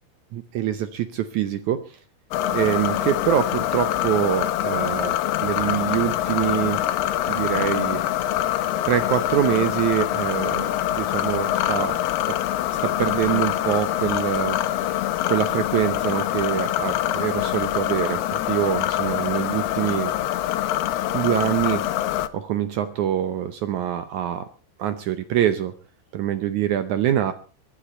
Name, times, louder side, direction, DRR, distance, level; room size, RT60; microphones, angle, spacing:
voice 1, 0.3-2.0 2.5-6.8 7.3-8.0 8.8-12.0 12.3-12.4 12.8-14.9 15.3-20.1 21.1-21.9 22.3-24.5 24.8-25.7 26.1-27.3, right 11 dB, 80° right, 11 dB, 1.7 m, -25 dB
sound 1, 2.3-22.3, left 13 dB, 85° left, 2.9 m, -25 dB
22.5 x 10.0 x 4.3 m, 0.36 s
omnidirectional pair, 4.5 m